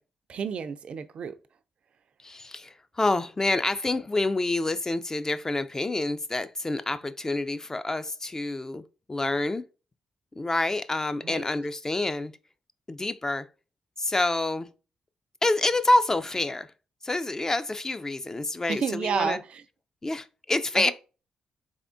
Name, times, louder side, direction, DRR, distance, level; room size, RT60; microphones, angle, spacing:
voice 1, 0.3-1.4 11.2-11.4 18.7-19.6 20.8-20.9, right 6 dB, 60° right, 0.3 m, -30 dB
voice 2, 2.2-8.8 9.1-9.6 10.4-12.3 12.9-13.5 14.0-14.7 15.4-16.7 17.0-19.4 20.0-20.9, left 2 dB, 25° left, 0.3 m, -27 dB
3.5 x 3.5 x 2.5 m
supercardioid pair, 50°, 2 cm